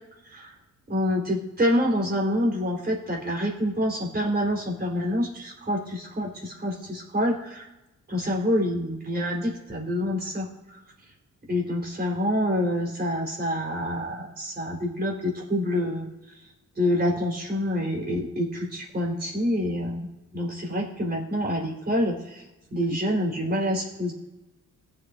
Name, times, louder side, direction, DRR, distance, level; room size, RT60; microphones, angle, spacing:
voice 1, 0.9-7.7 8.1-10.8 11.5-16.1 16.8-22.4 22.7-24.1, equal, 30° right, -1 dB, 4.0 m, -27 dB
21.0 x 7.6 x 2.7 m, 1.0 s
cardioid pair, 90°, 30 cm